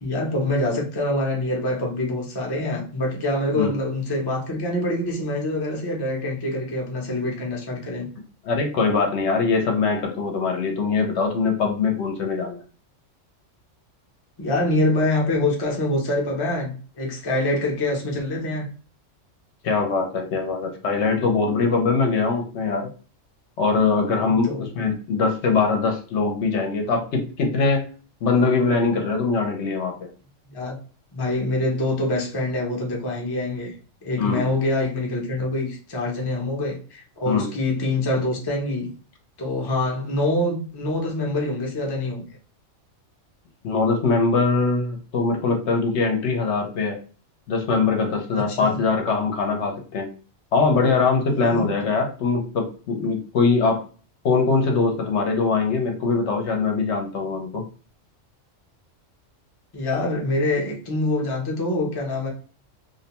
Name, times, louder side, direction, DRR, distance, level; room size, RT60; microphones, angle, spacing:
voice 1, 0.0-8.1 14.4-18.7 24.2-24.7 30.5-30.8 31.1-33.7 34.0-38.9 39.4-42.3 48.3-48.8 51.5-51.7 59.7-62.3, left 1 dB, 30° left, -1 dB, 0.5 m, -25 dB
voice 2, 8.5-12.6 19.6-22.9 23.6-27.9 28.2-30.1 34.2-34.4 37.3-37.5 43.6-47.0 47.5-50.1 50.5-53.8 54.2-57.6, left 4 dB, 70° left, 2 dB, 0.9 m, -22 dB
2.5 x 2.1 x 2.8 m, 0.37 s
omnidirectional pair, 1.3 m